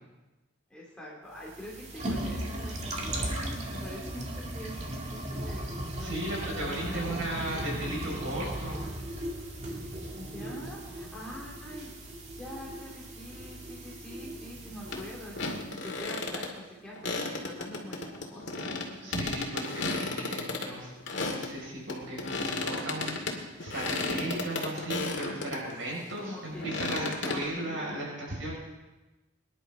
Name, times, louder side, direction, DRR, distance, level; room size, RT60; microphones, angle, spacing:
voice 1, 0.7-3.2 3.7-6.1 6.6-7.5 10.1-11.9 12.4-19.0 26.2-27.9, left 1 dB, 5° left, -5 dB, 2.7 m, -44 dB
sound 1, 1.4-15.7, right 1 dB, 35° right, 2.1 m, -37 dB
voice 2, 6.0-8.8 19.0-20.9 21.2-28.6, right 1 dB, 75° right, -4 dB, 6.1 m, -36 dB
sound 2, 14.9-15.0 15.3-16.5 16.9-21.5 21.9-25.6 26.1-27.4, left 3 dB, 60° left, 2.3 m, -33 dB
24.0 x 11.0 x 3.8 m, 1.1 s
head